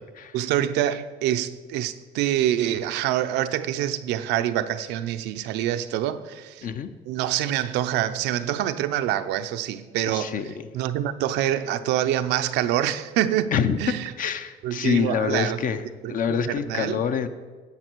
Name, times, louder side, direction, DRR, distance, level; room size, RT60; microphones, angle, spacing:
voice 1, 0.3-6.7 7.1-13.5 13.8-14.1 14.6-15.6 16.0-17.0, right 12 dB, 90° right, 10 dB, 0.6 m, -26 dB
voice 2, 10.1-10.5 13.5-13.8 14.2-15.8 16.1-17.3, left 7 dB, 55° left, 10 dB, 0.6 m, -26 dB
11.0 x 8.0 x 4.5 m, 1.4 s
cardioid pair, 110°, 17 cm